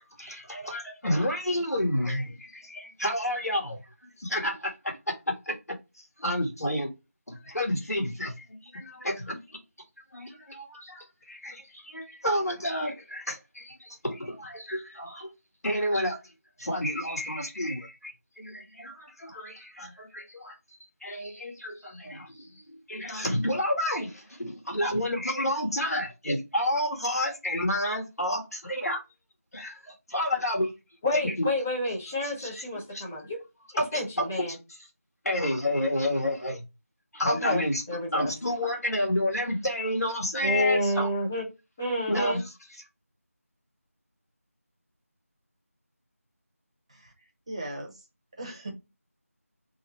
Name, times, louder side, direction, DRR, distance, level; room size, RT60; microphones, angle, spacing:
voice 1, 0.0-3.8 4.2-6.9 7.3-9.4 10.1-15.3 15.6-16.2 16.6-20.6 21.0-29.0 29.5-30.7 31.1-31.5 32.2-32.6 32.9-33.0 33.8-34.4 35.2-36.6 37.1-37.8 38.1-41.1 42.1-42.4, left 1 dB, 80° left, 1.6 m, -30 dB
voice 2, 31.0-33.4 33.9-34.6 37.2-38.3 40.4-41.4 41.8-42.4, left 1 dB, 5° left, 0.6 m, -29 dB
voice 3, 46.9-48.0 48.3-48.7, right 1 dB, 25° right, 1.0 m, -39 dB
3.6 x 3.1 x 4.3 m
figure-of-eight pair, 170°, 8 cm